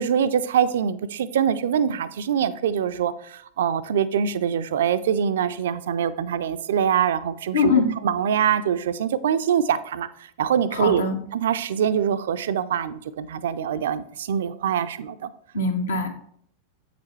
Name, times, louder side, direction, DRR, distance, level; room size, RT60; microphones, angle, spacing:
voice 1, 0.0-7.7 8.0-11.0 11.3-15.3, right 8 dB, 60° right, 13 dB, 0.4 m, -24 dB
voice 2, 7.5-7.9 10.7-11.2 15.5-16.1, left 4 dB, 70° left, 5 dB, 1.0 m, -22 dB
8.1 x 6.7 x 3.1 m, 0.63 s
figure-of-eight pair, 90°, 0 cm